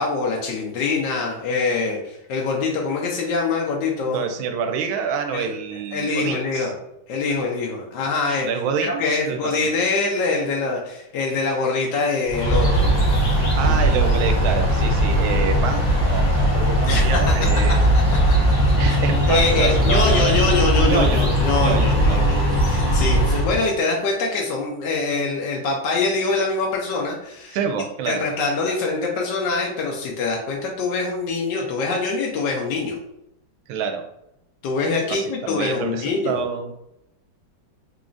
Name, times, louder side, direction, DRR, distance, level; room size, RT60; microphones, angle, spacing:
voice 1, 0.0-4.3 5.3-5.5 5.9-6.7 7.1-8.5 8.8-12.9 13.6-13.8 16.9-17.2 18.3-18.4 18.9-19.0 19.3-27.6 28.1-33.0 34.6-36.4, left 3 dB, 70° left, -1 dB, 1.1 m, -24 dB
voice 2, 4.0-6.7 8.4-9.7 13.6-18.2 18.8-20.5 20.8-21.3 21.5-22.2 23.3-23.4 27.5-28.2 33.7-34.0 35.1-36.7, right 6 dB, 85° right, 6 dB, 1.4 m, -27 dB
sound 1, 12.3-23.7, equal, 25° left, 1.1 m, -19 dB
4.0 x 3.0 x 2.5 m, 0.83 s
omnidirectional pair, 2.2 m